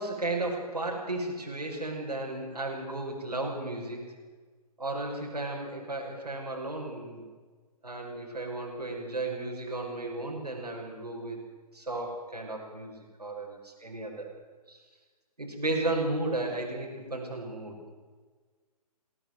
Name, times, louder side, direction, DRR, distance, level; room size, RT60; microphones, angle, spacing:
voice 1, 0.0-4.0 4.8-7.2 7.8-11.4 11.7-12.9 13.2-14.3 14.7-14.8 15.4-17.8, right 2 dB, 80° right, 0 dB, 5.5 m, -34 dB
21.0 x 17.0 x 7.8 m, 1.4 s
figure-of-eight pair, 135°, 20 cm